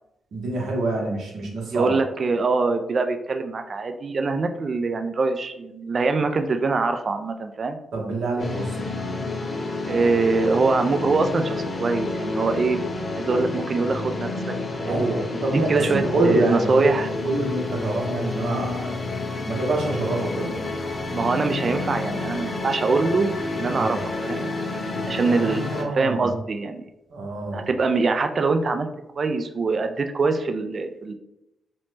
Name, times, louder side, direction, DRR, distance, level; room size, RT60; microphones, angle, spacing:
voice 1, 0.3-2.0 7.9-9.0 14.9-16.9 17.2-19.1 19.4-20.6 23.7-24.0 25.2-26.3 27.1-27.7, right 2 dB, 75° right, -1 dB, 0.8 m, -26 dB
voice 2, 1.7-7.8 9.9-12.8 13.1-14.3 14.8-15.0 15.3-15.4 15.7-17.1 21.1-24.0 24.2-24.5 25.0-26.8 27.5-28.9 29.2-31.1, right 3 dB, 50° right, 7 dB, 0.3 m, -23 dB
sound 1, 8.4-25.8, left 3 dB, 45° left, 0.6 m, -29 dB
3.0 x 2.0 x 3.1 m, 0.89 s
supercardioid pair, 50°, 0 cm